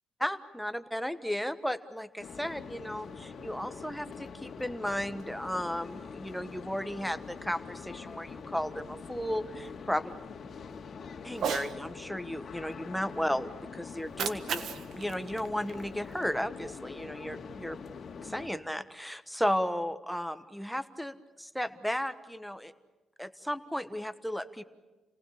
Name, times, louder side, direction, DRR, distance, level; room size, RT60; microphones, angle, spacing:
voice 1, 0.2-10.1 11.2-14.6 14.9-17.8 18.2-22.7 23.2-24.6, equal, ahead, 11 dB, 1.2 m, -34 dB
sound 1, 2.2-18.5, left 5 dB, 50° left, 2.3 m, -44 dB
Cat, 11.3-11.7 13.9-16.3, right 7 dB, 65° right, 1.5 m, -36 dB
29.5 x 19.0 x 8.6 m, 1.2 s
cardioid pair, 90°, 0 cm